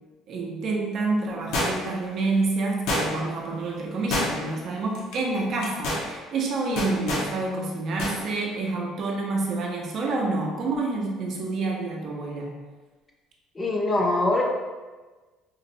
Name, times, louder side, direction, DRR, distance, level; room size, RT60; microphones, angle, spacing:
voice 1, 0.3-12.6, right 3 dB, 45° right, -1 dB, 0.5 m, -28 dB
sound 1, 1.5-2.0 2.9-3.4 4.1-4.6 4.9-5.1 5.6-6.1 6.8-7.3 8.0-8.2 8.5-8.6, left 1 dB, 75° left, 0.7 m, -27 dB
voice 2, 13.6-14.4, left 2 dB, 15° left, -1 dB, 0.3 m, -23 dB
3.8 x 2.0 x 2.6 m, 1.3 s
cardioid pair, 160°, 0 cm